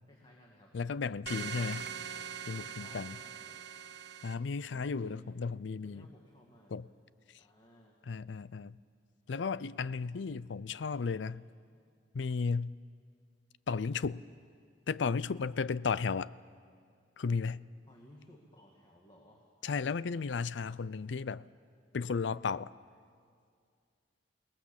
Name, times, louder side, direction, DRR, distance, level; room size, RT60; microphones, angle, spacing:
voice 1, 0.1-0.7 2.6-3.8 4.7-5.3 5.8-6.7 7.4-8.0 17.9-19.4, left 1 dB, 25° left, 2.2 m, -58 dB
voice 2, 0.7-1.9 2.5-3.2 4.2-6.1 6.7-6.9 8.0-8.8 9.3-11.4 12.1-12.7 13.7-14.2 14.9-16.3 17.2-17.6 19.6-21.4 21.9-22.7, left 5 dB, 85° left, 0.5 m, -34 dB
sound 1, 1.3-4.3, right 8 dB, 65° right, 0.9 m, -42 dB
29.0 x 19.0 x 7.3 m
head